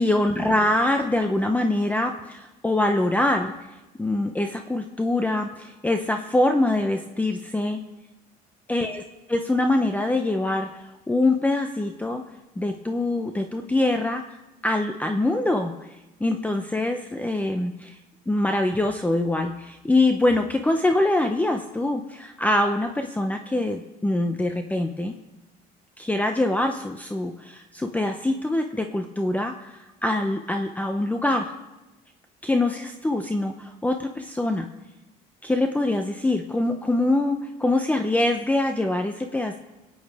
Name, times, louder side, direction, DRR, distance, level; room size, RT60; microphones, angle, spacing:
voice 1, 0.0-3.5 4.0-7.8 8.7-9.0 9.3-10.7 11.1-12.2 12.6-14.2 14.6-15.7 16.2-17.9 18.3-25.1 26.0-31.5 32.4-34.7 35.4-39.6, left 2 dB, 10° left, 5 dB, 0.7 m, -24 dB
22.5 x 8.8 x 3.5 m, 1.0 s
cardioid pair, 110°, 17 cm